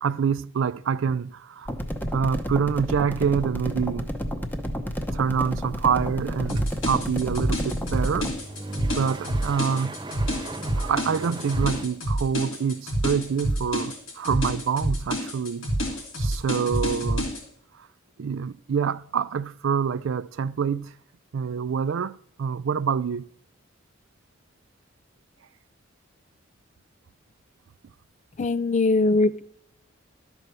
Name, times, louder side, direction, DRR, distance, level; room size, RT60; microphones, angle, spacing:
voice 1, 0.0-1.7 2.1-4.1 5.1-8.3 8.8-10.0 10.8-15.7 16.2-17.3 18.2-20.9 21.3-23.3, right 6 dB, 70° right, 0.4 m, -26 dB
sound 1, 1.7-8.4, equal, 10° left, 0.8 m, -31 dB
sound 2, 5.3-11.8, right 2 dB, 25° right, 0.6 m, -38 dB
sound 3, 6.5-17.4, equal, 85° left, 2.7 m, -28 dB
voice 2, 28.4-29.4, left 2 dB, 35° left, 0.4 m, -21 dB
12.0 x 4.5 x 6.7 m
head